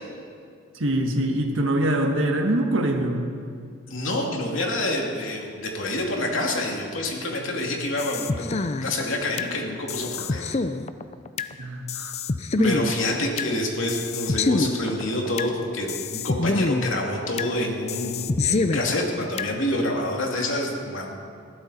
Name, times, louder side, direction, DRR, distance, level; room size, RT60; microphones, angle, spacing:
voice 1, 0.7-3.2 11.6-12.1 12.6-12.9, right 1 dB, 85° right, 2 dB, 1.5 m, -24 dB
voice 2, 3.9-10.4 12.6-21.1, left 1 dB, 85° left, 0 dB, 2.7 m, -27 dB
sound 1, 8.0-9.5 9.9-11.5 11.9-13.5 13.9-15.5 15.9-17.5 17.9-19.5, left 3 dB, 35° left, 0.5 m, -26 dB
20.5 x 15.0 x 4.3 m, 2.2 s
head